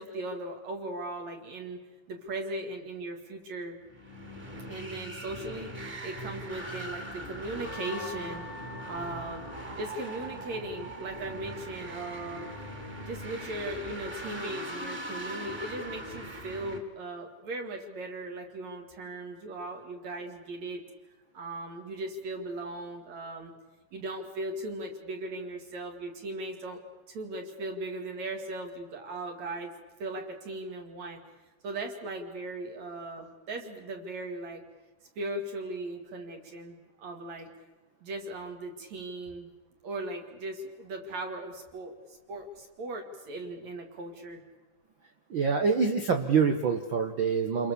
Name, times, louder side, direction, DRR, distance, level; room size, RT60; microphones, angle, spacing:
voice 1, 0.0-1.8 2.1-3.8 4.7-9.5 9.8-12.5 13.1-20.8 21.3-23.5 23.9-26.8 27.1-29.7 30.0-31.2 31.6-34.6 35.2-37.5 38.0-39.5 39.8-42.0 42.3-44.4, right 2 dB, 55° right, 3 dB, 3.6 m, -38 dB
sound 1, 3.9-16.8, right 1 dB, 15° right, 2.6 m, -41 dB
Wind instrument woodwind instrument, 7.6-13.1, equal, 40° left, 1.4 m, -48 dB
voice 2, 45.3-47.7, right 5 dB, 80° right, 6 dB, 1.0 m, -26 dB
28.5 x 22.0 x 7.0 m, 1.1 s
omnidirectional pair, 4.0 m